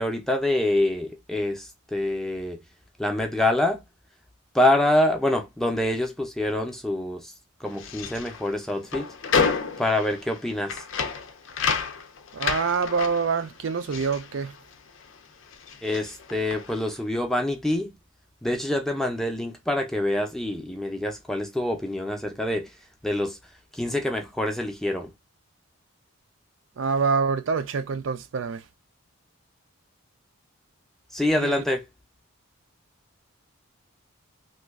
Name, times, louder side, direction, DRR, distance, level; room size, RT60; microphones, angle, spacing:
voice 1, 0.0-2.6 3.0-3.8 4.5-7.3 7.6-9.1 9.8-10.8 15.8-17.9 18.4-22.7 23.0-23.4 23.7-25.1 31.1-31.8, left 1 dB, ahead, 0.5 m, -26 dB
sound 1, 7.7-15.2 15.4-16.9, left 5 dB, 60° left, 0.5 m, -30 dB
voice 2, 12.3-14.6 26.8-28.6 31.3-31.6, right 5 dB, 60° right, 0.4 m, -26 dB
3.0 x 2.4 x 3.5 m
head